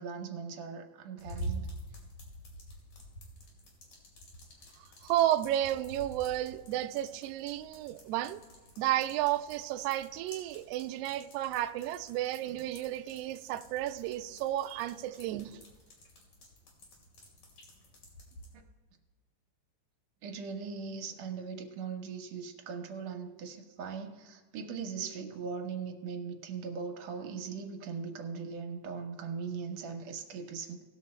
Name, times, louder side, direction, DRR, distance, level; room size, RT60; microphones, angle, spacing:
voice 1, 0.0-1.7 20.2-30.8, right 5 dB, 70° right, 1.9 m, -39 dB
sound 1, 1.2-18.5, right 1 dB, 80° left, 3.9 m, -48 dB
voice 2, 5.0-8.4 8.8-15.6, right 13 dB, 90° right, 1.4 m, -32 dB
18.5 x 6.7 x 4.2 m
omnidirectional pair, 3.3 m